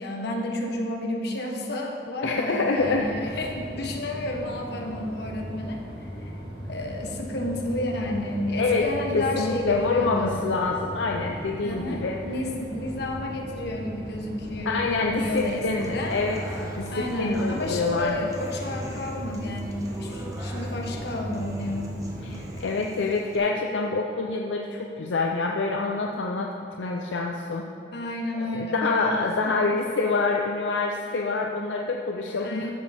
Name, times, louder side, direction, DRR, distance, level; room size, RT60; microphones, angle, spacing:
voice 1, 0.0-5.8 6.7-10.4 11.6-15.6 15.9-16.2 16.9-22.0 27.9-29.5 32.4-32.7, left 1 dB, 60° left, 1 dB, 1.2 m, -31 dB
voice 2, 2.2-3.3 8.6-12.2 14.7-18.2 22.2-26.5 26.8-27.7 28.5-32.7, left 3 dB, 80° left, 1 dB, 0.6 m, -26 dB
sound 1, 2.8-22.6, equal, 60° right, 2.2 m, -37 dB
Human voice / Acoustic guitar, 15.4-23.4, equal, 20° right, 1.0 m, -42 dB
13.0 x 7.4 x 3.5 m, 2.9 s
head